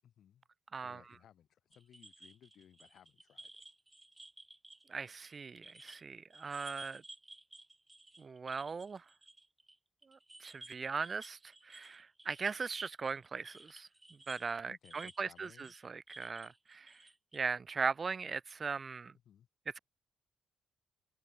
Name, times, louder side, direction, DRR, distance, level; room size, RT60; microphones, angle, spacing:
voice 1, 0.0-0.4 0.8-3.5 14.7-15.7 19.3-19.5, left 10 dB, 70° left, 7.5 m, -61 dB
voice 2, 0.7-1.0 4.9-7.0 8.2-9.0 10.1-11.4 11.6-13.9 14.3-16.9 17.3-19.1, right 5 dB, 35° right, 0.7 m, -39 dB
sound 1, 1.7-6.0 6.3-9.8 10.0-17.5, right 2 dB, 10° right, 5.3 m, -55 dB
cardioid pair, 120°, 0 cm